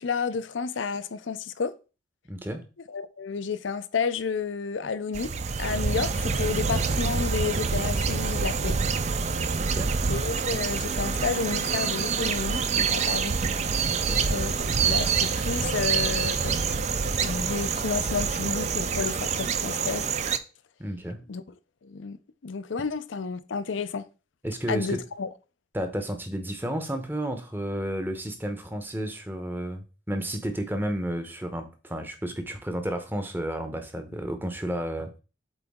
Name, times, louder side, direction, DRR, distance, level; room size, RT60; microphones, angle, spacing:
voice 1, 0.0-1.7 2.9-5.3 5.6-8.8 10.1-13.4 14.3-16.5 17.2-20.0 21.3-21.4 21.8-22.2 22.4-24.1 24.7-25.3, left 5 dB, 80° left, 0.5 m, -31 dB
voice 2, 2.3-2.6 9.6-9.9 13.8-14.3 20.8-21.2 24.4-25.0 25.7-35.2, right 1 dB, 10° right, 0.8 m, -32 dB
sound 1, 5.1-20.4, right 5 dB, 35° right, 0.4 m, -26 dB
8.1 x 4.0 x 3.6 m
head